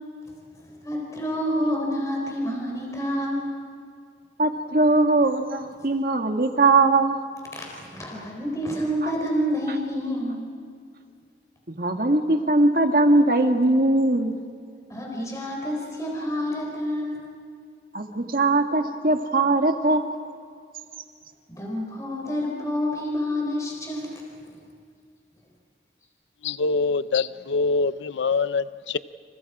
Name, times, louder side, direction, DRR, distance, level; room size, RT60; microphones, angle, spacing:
voice 1, 0.8-3.5 7.6-10.4 14.9-17.3 21.5-24.2, equal, 20° left, -1 dB, 3.9 m, -28 dB
voice 2, 4.4-7.2 9.0-9.1 11.7-14.3 17.9-20.0, right 2 dB, 50° right, 5 dB, 1.9 m, -20 dB
voice 3, 26.4-29.0, left 4 dB, 90° left, 15 dB, 0.5 m, -24 dB
30.0 x 28.0 x 4.9 m, 2.2 s
head